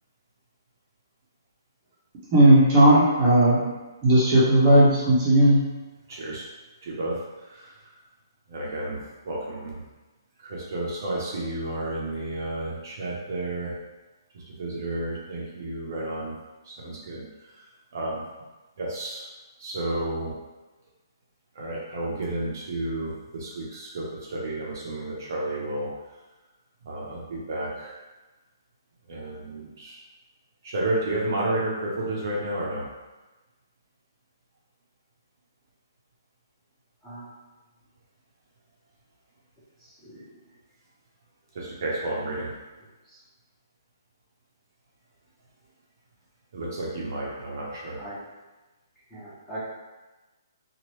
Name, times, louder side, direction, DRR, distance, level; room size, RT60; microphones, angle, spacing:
voice 1, 2.3-3.6 4.0-5.6, right 1 dB, 25° right, -8 dB, 0.9 m, -16 dB
voice 2, 6.1-6.4 6.8-7.8 8.5-9.8 10.4-13.7 14.3-16.3 16.6-17.6 17.9-18.2 18.8-19.2 19.6-20.3 21.5-25.9 26.8-28.0 29.1-30.0 30.6-32.9 41.5-42.5 46.5-48.0, right 1 dB, 55° right, -4 dB, 0.8 m, -31 dB
voice 3, 49.1-49.6, right 1 dB, 10° left, -12 dB, 1.3 m, -41 dB
3.0 x 2.5 x 3.0 m, 1.2 s
hypercardioid pair, 160°, 2 cm